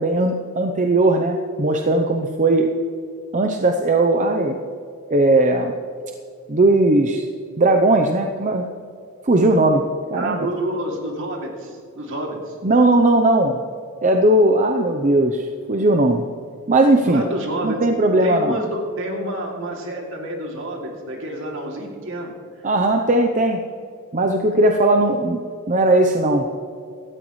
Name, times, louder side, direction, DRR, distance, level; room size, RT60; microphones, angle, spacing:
voice 1, 0.0-2.7 3.3-4.6 5.1-5.7 6.5-7.2 7.6-8.7 9.2-9.8 10.1-10.5 12.6-13.6 14.0-16.3 16.7-17.2 17.6-18.6 22.6-23.6 24.1-26.5, right 2 dB, 35° right, 4 dB, 0.7 m, -18 dB
voice 2, 10.1-12.6 17.0-17.9 18.2-22.6, right 1 dB, 60° right, 0 dB, 2.7 m, -28 dB
17.5 x 13.5 x 3.2 m, 2.4 s
head